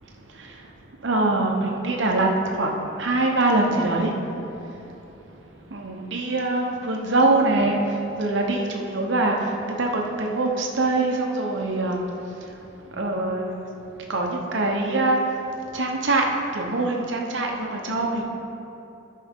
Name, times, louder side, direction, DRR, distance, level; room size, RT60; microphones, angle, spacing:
voice 1, 1.0-2.3 2.5-2.7 3.0-4.1 5.7-7.8 8.2-9.3 9.8-12.0 13.0-13.6 14.1-15.2 15.7-16.2 16.5-18.2, right 2 dB, 70° right, 1 dB, 0.9 m, -23 dB
13.5 x 5.6 x 3.6 m, 2.9 s
head